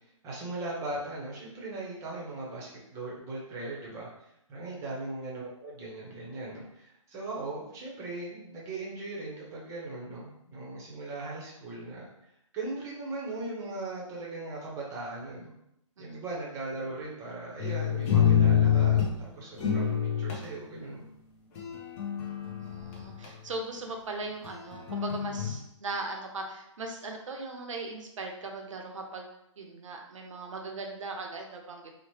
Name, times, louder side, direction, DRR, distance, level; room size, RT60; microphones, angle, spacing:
voice 1, 0.2-4.1 4.5-15.5 16.0-19.0 19.4-19.8 20.2-21.1, right 2 dB, 20° right, -4 dB, 0.8 m, -39 dB
sound 1, 17.6-19.1 19.6-20.5 21.6-23.3 24.4-25.5, left 9 dB, 30° left, 0.6 m, -26 dB
voice 2, 22.6-29.3 29.6-32.0, right 3 dB, 70° right, 2 dB, 0.6 m, -39 dB
3.0 x 2.1 x 3.0 m, 0.80 s
hypercardioid pair, 140°, 17 cm